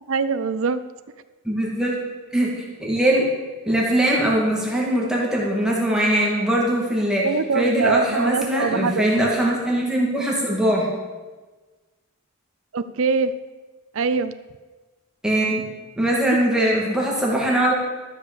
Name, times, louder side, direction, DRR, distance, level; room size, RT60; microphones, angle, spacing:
voice 1, 0.1-0.8 7.2-9.1 12.7-13.3 13.9-14.3, right 4 dB, 60° right, 11 dB, 0.5 m, -23 dB
voice 2, 1.4-2.0 2.3-3.3 3.7-7.3 7.5-10.9 15.2-15.6 16.0-17.7, right 1 dB, 5° right, -4 dB, 2.1 m, -21 dB
13.0 x 6.6 x 6.8 m, 1.3 s
head